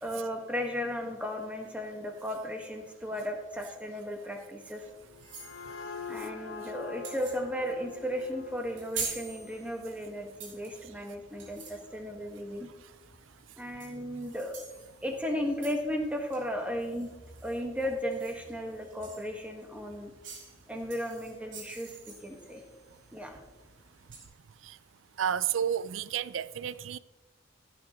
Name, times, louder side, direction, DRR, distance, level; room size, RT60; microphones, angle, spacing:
voice 1, 0.0-4.8 6.1-12.7 13.6-14.6 15.0-17.1 17.4-20.1 20.7-22.6 23.1-23.4, equal, 5° right, 1.5 m, -35 dB
sound 1, 4.8-24.2, right 5 dB, 70° right, 3.5 m, -47 dB
sound 2, 5.0-10.5, left 5 dB, 85° left, 1.0 m, -45 dB
voice 2, 25.2-27.0, right 9 dB, 90° right, 0.4 m, -30 dB
15.5 x 9.1 x 3.1 m
head